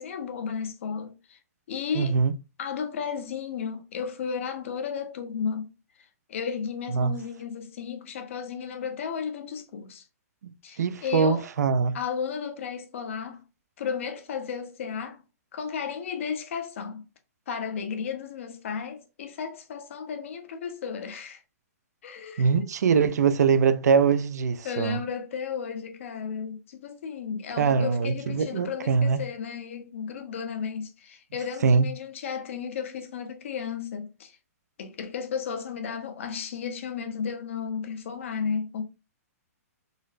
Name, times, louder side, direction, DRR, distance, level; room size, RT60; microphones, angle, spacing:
voice 1, 0.0-1.4 1.7-2.2 2.6-5.7 6.3-10.0 10.6-11.5 11.9-13.4 13.8-15.2 15.5-17.0 17.5-21.4 22.0-22.7 24.6-34.4 34.8-38.8, left 6 dB, 50° left, 0.6 m, -34 dB
voice 2, 2.0-2.3 6.9-7.1 10.4-11.9 22.4-25.0 27.6-29.3 31.6-31.9, right 5 dB, 85° right, 0.4 m, -23 dB
3.9 x 2.0 x 2.5 m
hypercardioid pair, 170°, 9 cm